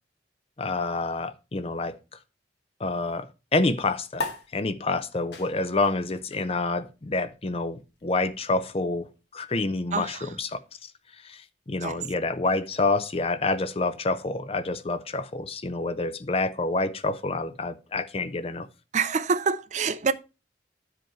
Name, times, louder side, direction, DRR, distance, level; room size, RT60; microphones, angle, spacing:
voice 1, 0.6-2.0 2.8-3.3 3.5-9.1 9.3-10.6 11.2-11.4 11.7-18.7, left 3 dB, 35° left, 0.6 m, -28 dB
sound 1, 4.1-11.0, left 3 dB, 70° left, 1.4 m, -42 dB
voice 2, 9.9-10.2 11.8-12.0 18.9-20.1, right 5 dB, 45° right, 0.5 m, -26 dB
10.5 x 5.0 x 4.5 m
head